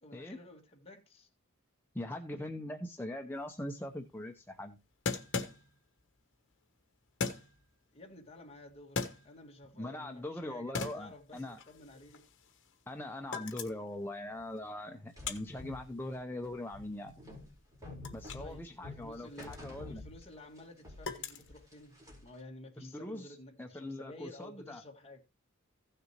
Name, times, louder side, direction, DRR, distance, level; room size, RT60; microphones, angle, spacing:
voice 1, 0.0-1.3 7.9-12.3 18.4-25.2, left 1 dB, 30° left, 2.0 m, -52 dB
voice 2, 1.9-4.8 9.8-11.6 12.9-17.1 18.1-20.0 22.8-24.8, left 1 dB, 10° left, 0.7 m, -41 dB
sound 1, 3.4-3.5 3.7-3.8 5.1-6.0 7.2-7.7 8.7-9.6 10.1-10.4 10.7-12.9 13.2-13.9 14.3-18.5 18.8-22.1, left 4 dB, 60° left, 1.3 m, -40 dB
sound 2, 15.2-20.6 20.8-22.4, left 2 dB, 15° right, 4.3 m, -48 dB
16.0 x 6.7 x 3.0 m
head